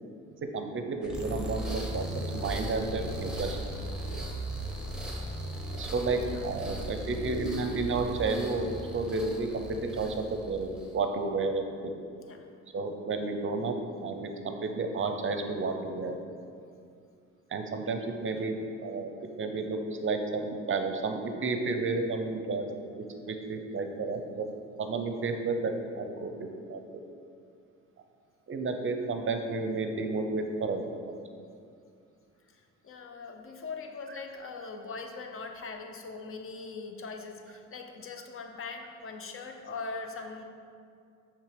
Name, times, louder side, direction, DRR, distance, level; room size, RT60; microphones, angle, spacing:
voice 1, 0.5-2.1 2.3-3.6 5.7-8.7 8.9-9.7 10.0-11.9 12.7-13.7 14.0-16.1 17.5-18.5 18.8-19.1 19.4-22.7 23.0-24.5 24.8-26.8 28.5-31.2, right 3 dB, 45° right, 5 dB, 0.6 m, -31 dB
sound 1, 1.0-11.0, right 1 dB, 5° right, 1.0 m, -37 dB
voice 2, 32.5-40.4, left 4 dB, 45° left, 5 dB, 0.7 m, -41 dB
6.5 x 3.4 x 5.0 m, 2.4 s
cardioid pair, 90°, 30 cm